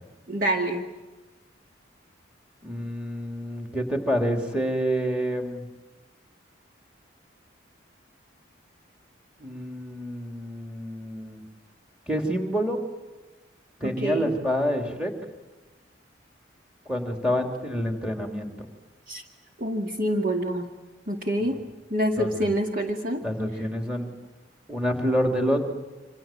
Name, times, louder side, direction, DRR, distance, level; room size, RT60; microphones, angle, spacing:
voice 1, 0.3-0.9 13.8-14.3 19.1-19.2 19.6-20.7 21.1-21.6 21.9-23.2, right 1 dB, 45° right, 2 dB, 2.1 m, -26 dB
voice 2, 2.6-5.7 9.4-11.4 12.1-12.8 13.8-15.1 16.9-18.7 22.2-22.5 23.2-24.1 24.7-25.6, equal, 5° right, 3 dB, 3.3 m, -27 dB
28.0 x 26.5 x 7.5 m, 1.2 s
head